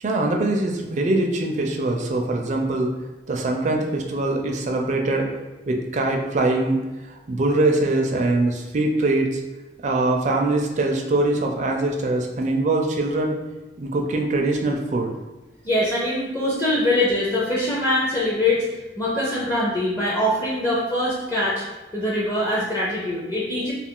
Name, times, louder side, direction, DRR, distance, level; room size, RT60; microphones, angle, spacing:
voice 1, 0.0-2.9 3.3-5.3 5.7-6.8 7.3-9.4 9.8-13.4 13.8-15.2, right 2 dB, 40° right, 1 dB, 0.4 m, -22 dB
voice 2, 15.6-18.6 19.0-21.6 21.9-23.7, left 1 dB, 20° left, -8 dB, 0.5 m, -23 dB
2.4 x 2.3 x 3.6 m, 1.1 s
head